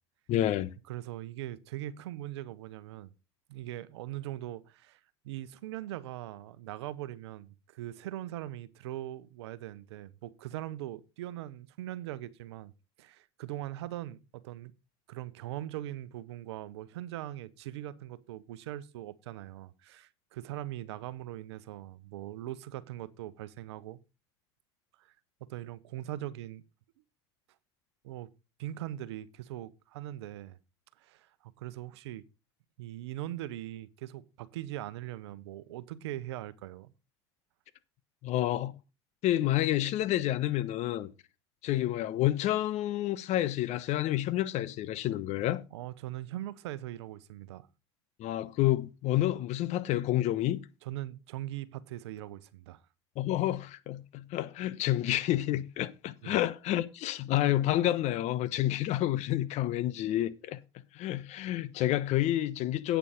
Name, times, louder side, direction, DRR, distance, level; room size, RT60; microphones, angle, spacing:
voice 1, 0.3-0.7 38.2-38.7 39.2-41.1 41.6-45.6 48.2-50.6 53.2-60.6 60.9-63.0, left 14 dB, 55° left, 1.0 m, -29 dB
voice 2, 0.9-3.1 3.5-12.7 13.0-14.7 15.1-24.0 25.0-25.1 25.4-26.6 28.0-28.3 28.6-30.6 31.0-32.2 32.8-36.9 45.7-47.7 50.8-52.8 56.2-56.4, right 14 dB, 85° right, 0.9 m, -41 dB
9.0 x 7.0 x 5.0 m
hypercardioid pair, 90°, 14 cm